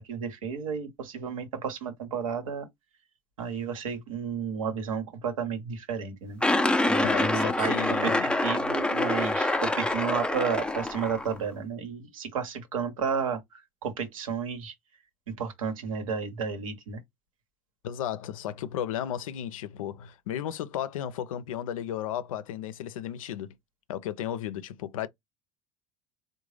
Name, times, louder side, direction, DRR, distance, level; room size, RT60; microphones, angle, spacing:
voice 1, 0.0-2.7 3.4-6.4 6.9-8.1 8.4-14.7 15.3-17.0, right 6 dB, 85° right, 1.0 m, -32 dB
sound 1, 6.4-11.4, left 2 dB, 5° left, 0.4 m, -26 dB
voice 2, 7.0-8.3 17.8-23.5 23.9-25.1, left 10 dB, 85° left, 0.5 m, -34 dB
3.7 x 2.1 x 3.2 m
hypercardioid pair, 75°, 17 cm